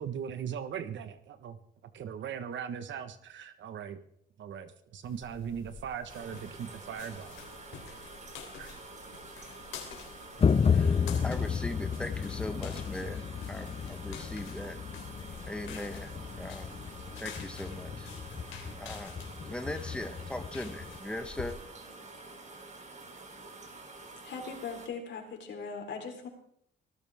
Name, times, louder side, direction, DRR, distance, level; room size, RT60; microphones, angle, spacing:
voice 1, 0.0-1.6 1.9-4.0 4.4-7.5 7.7-7.8 8.5-8.7 9.1-9.2, right 8 dB, 70° right, 10 dB, 1.4 m, -39 dB
sound 1, 5.0-21.5, left 6 dB, 90° left, 3.4 m, -48 dB
sound 2, 6.1-24.9, right 3 dB, 35° right, 3.1 m, -48 dB
sound 3, 10.4-21.0, left 6 dB, 30° left, 0.6 m, -32 dB
voice 2, 10.7-14.8 15.5-16.1 16.4-16.7 17.2-18.1 18.8-19.2 19.4-21.5, left 1 dB, 5° left, 7 dB, 1.3 m, -40 dB
voice 3, 24.2-26.3, left 5 dB, 65° left, 2 dB, 4.2 m, -39 dB
24.0 x 14.5 x 3.6 m, 0.69 s
cardioid pair, 90°, 20 cm